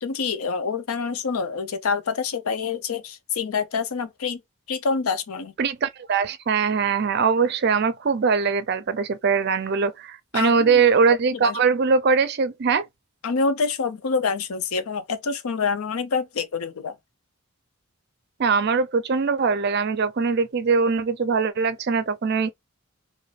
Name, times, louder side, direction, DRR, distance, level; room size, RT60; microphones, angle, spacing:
voice 1, 0.0-4.4 4.7-5.5 10.3-10.8 11.3-11.6 13.2-17.0, left 5 dB, 85° left, 0.5 m, -26 dB
voice 2, 5.6-12.9 18.4-22.5, right 5 dB, 50° right, 0.4 m, -21 dB
2.6 x 2.4 x 3.3 m
head